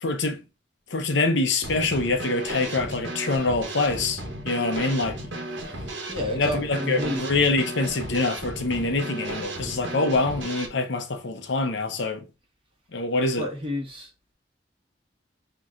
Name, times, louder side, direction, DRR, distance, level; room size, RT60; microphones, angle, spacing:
voice 1, 0.0-0.4 0.9-5.2 6.3-12.2 12.9-13.5, left 3 dB, 85° left, 0.8 m, -25 dB
Drum kit / Snare drum, 1.6-10.7, right 1 dB, 85° right, 1.2 m, -34 dB
voice 2, 6.1-7.2 13.4-14.1, left 1 dB, 30° right, 1.1 m, -30 dB
5.8 x 3.0 x 2.5 m
head